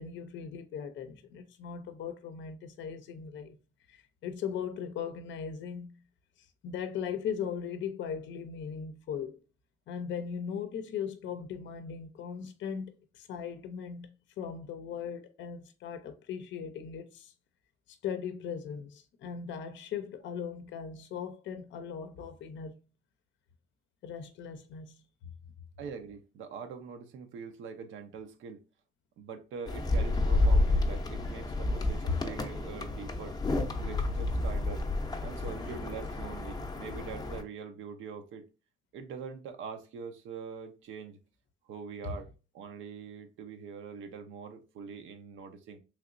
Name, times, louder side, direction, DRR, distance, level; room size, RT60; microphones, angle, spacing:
voice 1, 0.0-3.6 3.9-6.0 6.4-9.4 9.9-14.1 14.4-17.3 17.9-22.8 24.0-25.0 31.7-31.8 32.1-32.2 35.5-35.9 42.0-42.2, left 7 dB, 70° left, 0.5 m, -38 dB
voice 2, 25.8-28.6 29.2-33.4 33.8-34.9 35.2-38.4 38.9-41.2 41.6-42.3 42.5-45.8, right 6 dB, 80° right, 0.6 m, -43 dB
sound 1, 29.7-37.4, left 2 dB, 20° left, 0.5 m, -30 dB
3.2 x 2.9 x 2.5 m
cardioid pair, 90°, 20 cm